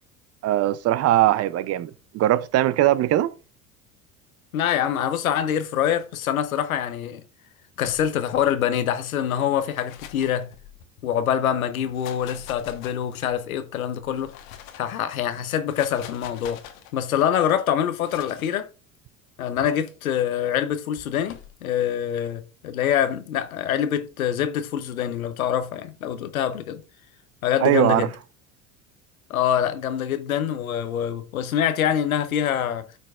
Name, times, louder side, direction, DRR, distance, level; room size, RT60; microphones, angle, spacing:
voice 1, 0.4-3.3 27.6-28.1, right 14 dB, 40° right, 0.5 m, -20 dB
voice 2, 4.5-7.2 7.8-10.5 11.0-14.3 14.8-16.6 16.9-18.7 19.4-26.8 27.4-28.1 29.3-32.8, left 9 dB, 85° left, 0.8 m, -25 dB
sound 1, 7.8-8.5 9.5-11.0 11.7-13.4 14.0-14.9 15.5-16.9 18.0-18.5 19.6-19.9 21.0-21.6, left 10 dB, 70° left, 1.2 m, -44 dB
13.5 x 4.7 x 2.4 m
hypercardioid pair, 75°, 41 cm